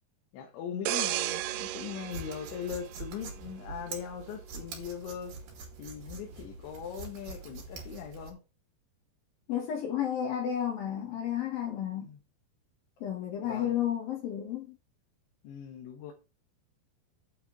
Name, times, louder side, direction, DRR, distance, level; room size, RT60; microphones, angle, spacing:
voice 1, 0.3-5.3 5.8-8.4 12.0-12.2 13.4-13.8 15.4-16.1, left 8 dB, 90° left, 3.6 m, -40 dB
sound 1, 0.9-3.5 4.0-4.2, right 15 dB, 80° right, 2.4 m, -34 dB
sound 2, 1.3-8.3, right 4 dB, 60° right, 4.2 m, -45 dB
voice 2, 9.5-12.1 13.0-14.8, left 10 dB, 65° left, 3.1 m, -32 dB
9.5 x 7.1 x 4.0 m
omnidirectional pair, 5.1 m